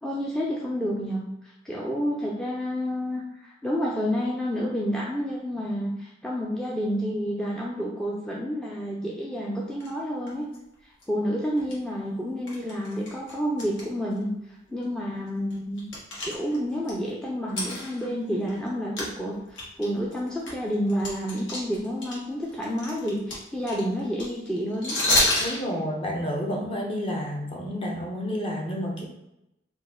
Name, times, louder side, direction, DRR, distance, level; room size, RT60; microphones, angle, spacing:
voice 1, 0.0-10.5 11.1-14.3 14.7-15.8 16.2-24.9, equal, 5° left, -4 dB, 0.4 m, -29 dB
sound 1, 9.8-9.9 10.3-10.6 11.0-11.1 11.6-11.7 12.5-13.8 14.1-14.2 14.8-14.9 15.3-16.9 17.5-18.7 19.0-19.1 19.5-22.1 22.4-25.6, left 1 dB, 80° left, 1.4 m, -28 dB
voice 2, 25.4-29.0, equal, 30° left, -1 dB, 0.8 m, -30 dB
4.1 x 2.4 x 3.6 m, 0.86 s
head